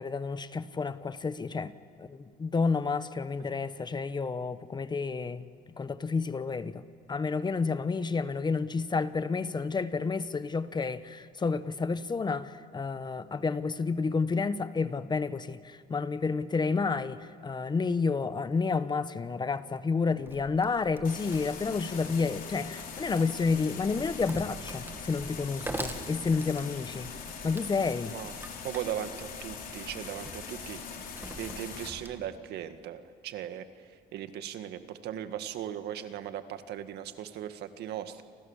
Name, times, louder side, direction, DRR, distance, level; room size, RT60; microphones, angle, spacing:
voice 1, 0.0-1.7 2.0-5.5 5.8-6.8 7.1-27.1 27.4-28.1, left 4 dB, 25° left, 1.1 m, -30 dB
Wood, 20.2-32.2, right 2 dB, 15° right, 2.4 m, -45 dB
sound 1, 21.0-31.9, left 6 dB, 55° left, 4.4 m, -42 dB
voice 2, 28.6-38.2, right 10 dB, 75° right, 1.9 m, -38 dB
29.5 x 26.0 x 7.4 m
cardioid pair, 110°, 17 cm